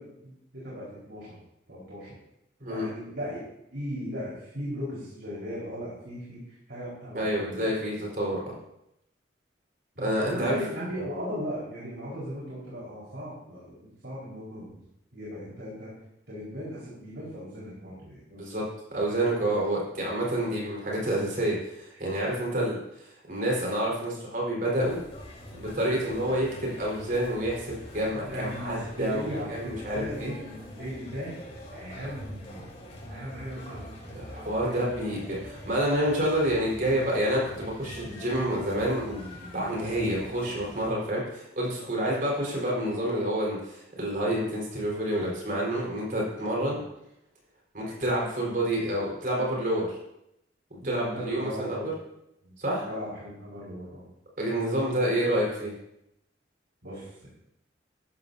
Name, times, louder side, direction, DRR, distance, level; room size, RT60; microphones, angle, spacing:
voice 1, 0.0-1.4 1.7-2.2 2.7-3.4 3.7-7.7 9.9-14.7 15.1-15.9 16.3-18.2 26.1-26.2 28.2-31.3 31.7-32.6 33.1-34.2 46.6-46.8 50.8-51.9 52.4-52.5 52.8-54.1 56.8-57.3, equal, 70° right, -7 dB, 4.6 m, -37 dB
voice 2, 7.1-8.5 10.0-10.6 11.0-11.1 18.3-18.6 18.9-25.0 25.5-30.3 34.1-46.8 47.7-50.0 50.8-51.8 52.6-52.9 54.4-55.7, right 1 dB, 50° right, -3 dB, 4.6 m, -28 dB
sound 1, 24.8-40.9, left 1 dB, 35° left, 4.2 m, -44 dB
13.5 x 12.5 x 2.8 m, 0.83 s
head